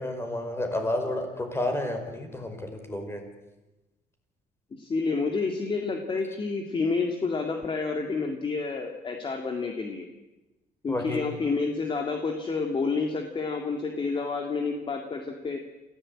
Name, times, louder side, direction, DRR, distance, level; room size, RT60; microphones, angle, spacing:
voice 1, 0.0-3.2 10.9-11.2, left 1 dB, 15° left, 5 dB, 5.0 m, -30 dB
voice 2, 4.7-10.1 10.8-15.6, left 4 dB, 30° left, 3 dB, 2.3 m, -29 dB
27.5 x 16.0 x 8.7 m, 1.1 s
cardioid pair, 140°, 16 cm